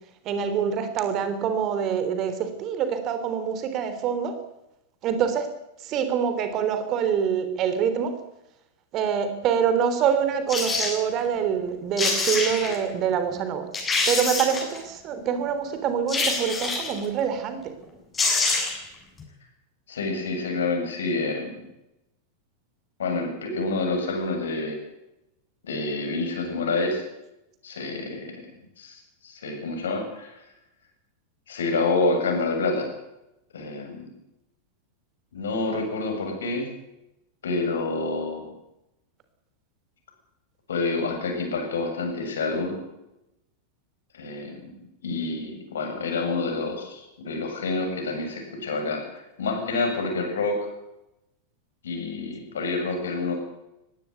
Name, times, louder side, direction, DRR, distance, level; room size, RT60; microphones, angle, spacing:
voice 1, 0.3-4.4 5.0-5.5 5.8-8.1 8.9-13.7 14.1-17.7, right 7 dB, 35° right, 9 dB, 3.4 m, -25 dB
sound 1, 10.5-11.0 11.7-11.8 12.0-12.8 13.3-13.4 13.7-14.8 16.1-17.0 17.8-17.9 18.1-18.9 19.2-19.3, left 3 dB, 20° left, 7.1 m, -25 dB
voice 2, 19.9-21.5 23.0-24.8 25.6-27.0 27.6-28.3 28.8-30.4 31.5-32.9 33.5-34.1 35.3-36.7 37.4-38.4 40.7-42.8 44.1-44.7 45.0-50.7 51.8-53.4, left 3 dB, 65° left, 3 dB, 7.6 m, -28 dB
20.5 x 16.5 x 8.3 m, 0.89 s
figure-of-eight pair, 90°, 0 cm